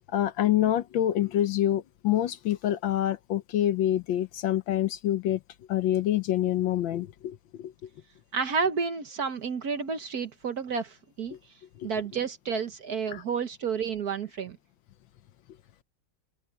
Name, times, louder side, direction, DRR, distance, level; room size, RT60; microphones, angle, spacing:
voice 1, 0.1-5.4 5.7-7.7 11.8-11.9 13.1-13.2, left 12 dB, 70° left, 1.4 m, -26 dB
voice 2, 8.3-11.4 11.8-14.6, right 5 dB, 50° right, 1.4 m, -30 dB
omnidirectional pair, 2.4 m